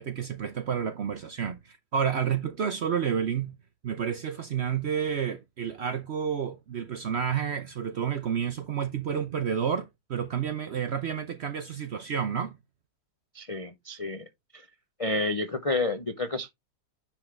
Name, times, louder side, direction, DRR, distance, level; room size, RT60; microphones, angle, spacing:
voice 1, 0.0-3.6 3.8-12.6, right 7 dB, 55° right, 0.7 m, -30 dB
voice 2, 13.3-14.2 14.5-14.6 15.0-16.5, left 2 dB, 45° left, 0.4 m, -30 dB
10.0 x 3.7 x 3.3 m
omnidirectional pair, 1.8 m